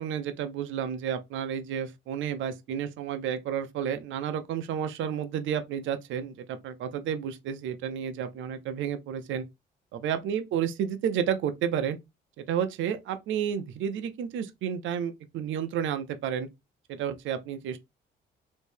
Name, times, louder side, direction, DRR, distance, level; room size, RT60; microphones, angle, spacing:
voice 1, 0.0-9.5 9.9-12.0 12.4-16.5 16.9-17.8, right 8 dB, 75° right, 0.5 m, -31 dB
3.1 x 2.6 x 3.3 m
cardioid pair, 90°, 20 cm